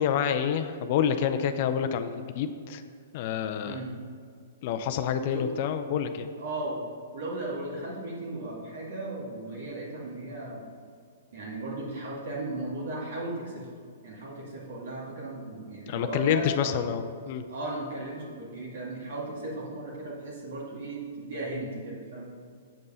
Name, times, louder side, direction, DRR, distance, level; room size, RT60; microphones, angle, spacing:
voice 1, 0.0-2.8 3.1-3.8 4.6-6.3 15.9-17.4, left 8 dB, 50° left, 8 dB, 0.5 m, -28 dB
voice 2, 6.4-6.8 7.1-10.7 11.3-13.7 14.0-16.8 17.5-22.3, right 2 dB, 70° right, -4 dB, 2.2 m, -36 dB
8.0 x 5.3 x 5.6 m, 2.1 s
hypercardioid pair, 130°, 0 cm